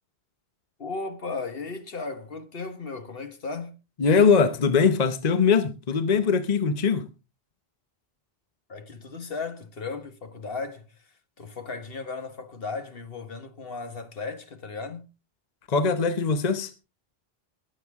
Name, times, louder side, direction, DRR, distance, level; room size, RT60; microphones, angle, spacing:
voice 1, 0.8-3.8 8.7-11.1 11.4-15.1, left 4 dB, 65° left, 1.5 m, -36 dB
voice 2, 4.0-7.1 15.7-16.7, left 5 dB, 45° left, 0.9 m, -21 dB
21.5 x 7.8 x 3.5 m
omnidirectional pair, 1.0 m